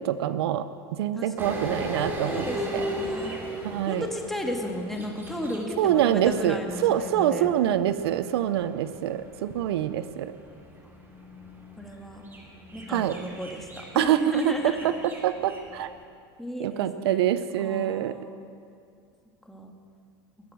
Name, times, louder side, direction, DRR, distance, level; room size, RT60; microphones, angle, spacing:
voice 1, 0.0-2.5 2.7-2.9 3.6-4.1 5.8-10.3 12.9-13.2 14.0-15.0 15.2-15.9 16.6-18.2, right 11 dB, 85° right, 13 dB, 0.7 m, -25 dB
voice 2, 1.1-1.7 2.2-3.4 3.9-8.0 11.8-12.2 12.7-14.9 16.4-18.4 19.5-19.7, left 1 dB, ahead, 2 dB, 2.0 m, -34 dB
sound 1, 1.4-16.0, equal, 15° right, 3.1 m, -38 dB
21.0 x 8.6 x 7.7 m, 2.4 s
supercardioid pair, 120°, 13 cm